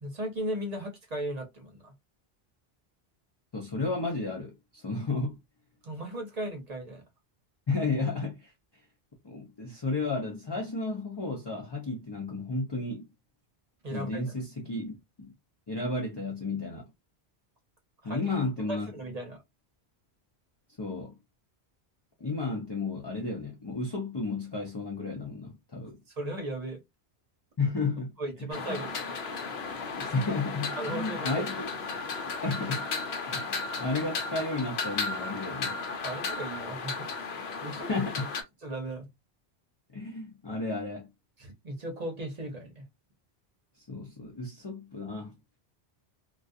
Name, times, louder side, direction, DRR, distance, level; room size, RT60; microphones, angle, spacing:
voice 1, 0.0-1.9 5.8-7.0 13.8-14.2 18.0-18.2 18.7-19.4 26.1-26.8 28.2-29.0 30.8-31.4 36.0-37.1 37.6-37.9 38.6-39.1 41.4-42.9, right 1 dB, 40° right, 0.8 m, -36 dB
voice 2, 3.5-5.4 7.7-8.5 9.2-13.1 13.9-15.3 15.7-16.8 18.0-18.9 20.8-21.1 22.2-26.0 27.6-28.1 28.4-28.8 29.9-31.7 32.4-32.9 33.2-35.7 37.8-38.2 39.9-41.1 43.9-45.3, left 3 dB, 35° left, 0.5 m, -33 dB
sound 1, 28.5-38.4, left 4 dB, 75° left, 0.9 m, -35 dB
2.3 x 2.3 x 2.5 m
omnidirectional pair, 1.1 m